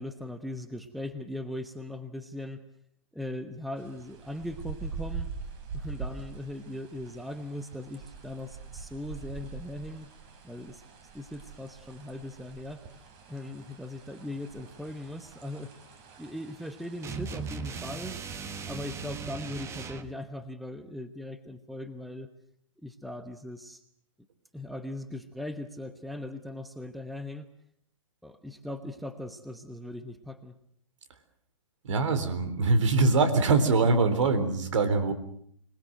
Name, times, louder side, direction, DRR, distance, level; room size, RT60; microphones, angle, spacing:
voice 1, 0.0-2.6 3.1-5.3 5.7-10.1 10.4-10.8 11.1-12.8 13.3-15.7 16.2-18.2 18.7-22.3 22.8-23.8 24.5-27.5 28.2-30.6, left 1 dB, ahead, 10 dB, 1.0 m, -39 dB
sound 1, 3.8-17.6, right 5 dB, 35° right, 4.0 m, -44 dB
sound 2, 17.0-20.1, right 5 dB, 15° right, 1.3 m, -37 dB
voice 2, 31.8-35.1, right 3 dB, 65° right, 11 dB, 3.7 m, -23 dB
25.5 x 19.5 x 7.7 m, 0.66 s
hypercardioid pair, 135°, 17 cm